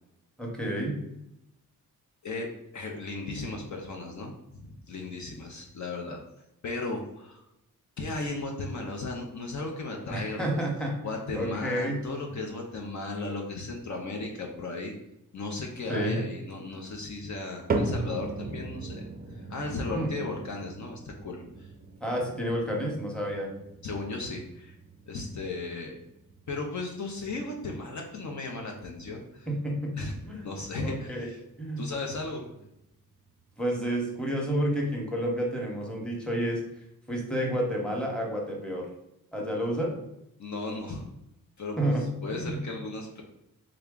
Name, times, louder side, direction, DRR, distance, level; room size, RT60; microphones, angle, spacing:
voice 1, 0.4-1.0 10.1-10.9 11.3-12.0 15.9-16.2 16.7-16.8 19.9-20.2 22.0-23.5 29.5-29.9 30.3-30.4 30.8-31.3 31.6-31.9 33.6-36.6 37.1-38.9 39.3-39.9 41.8-42.0 42.3-42.6, right 1 dB, ahead, -1 dB, 1.0 m, -30 dB
voice 2, 2.7-6.2 6.6-7.4 8.0-10.6 11.0-14.9 15.3-21.7 23.8-24.8 25.1-26.0 26.5-29.5 30.0-30.2 30.4-31.4 31.8-32.4 40.4-41.0 41.6-41.8 42.2-43.2, left 3 dB, 50° left, 1 dB, 0.6 m, -36 dB
sound 1, 17.7-34.0 34.3-34.9 35.5-35.6 36.4-36.5, right 3 dB, 25° right, 0.4 m, -39 dB
3.5 x 2.2 x 3.7 m, 0.85 s
cardioid pair, 75°, 36 cm